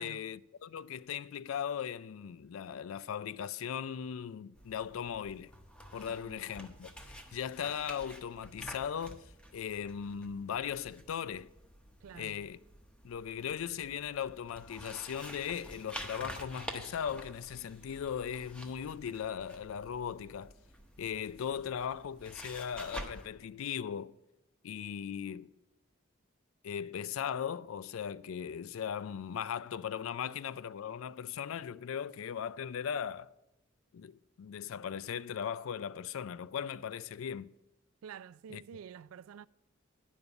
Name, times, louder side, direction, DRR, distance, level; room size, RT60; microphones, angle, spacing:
voice 1, 0.0-5.5 5.9-6.9 7.3-9.2 9.5-11.5 12.1-12.6 13.0-20.5 21.0-24.2 24.6-25.5 26.6-33.3 33.9-37.5 38.5-38.6, left 8 dB, 75° left, 0.4 m, -38 dB
sound 1, 4.5-23.3, equal, 5° left, 0.8 m, -49 dB
voice 2, 12.0-12.4 38.0-39.5, right 8 dB, 85° right, 0.3 m, -49 dB
11.0 x 5.3 x 8.0 m
head